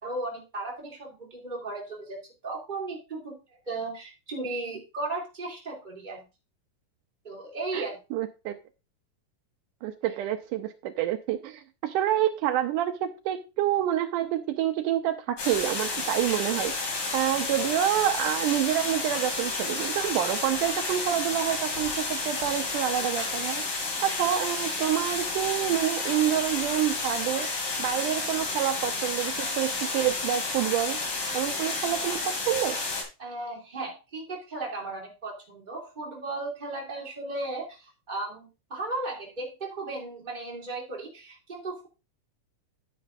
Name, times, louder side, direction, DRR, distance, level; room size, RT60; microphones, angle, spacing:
voice 1, 0.0-3.3 3.7-6.2 7.2-8.0 33.2-41.9, right 2 dB, 15° right, -3 dB, 2.6 m, -36 dB
voice 2, 7.7-8.6 9.8-16.7 17.1-31.0 31.3-32.8, right 11 dB, 80° right, 7 dB, 2.2 m, -28 dB
sound 1, 15.4-33.0, left 3 dB, 80° left, 4.3 m, -31 dB
10.0 x 9.2 x 2.6 m, 0.29 s
omnidirectional pair, 3.8 m